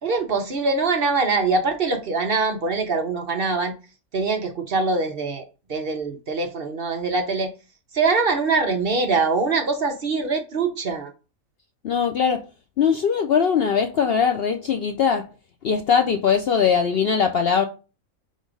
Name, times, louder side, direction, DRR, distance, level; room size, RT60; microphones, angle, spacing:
voice 1, 0.0-3.7 4.1-5.4 5.7-7.5 7.9-11.1, right 4 dB, 45° right, 1.0 m, -23 dB
voice 2, 11.8-12.4 12.8-15.2 15.6-17.6, left 7 dB, 60° left, 0.6 m, -20 dB
4.6 x 4.4 x 5.0 m
omnidirectional pair, 1.4 m